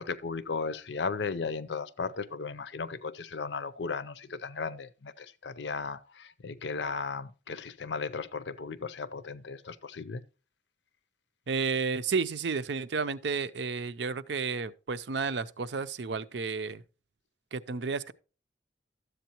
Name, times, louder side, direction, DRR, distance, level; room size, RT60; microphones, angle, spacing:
voice 1, 0.0-10.2, left 4 dB, 75° left, 0.6 m, -36 dB
voice 2, 11.5-16.8 17.5-18.1, right 5 dB, 75° right, 0.6 m, -32 dB
12.5 x 8.0 x 2.9 m
head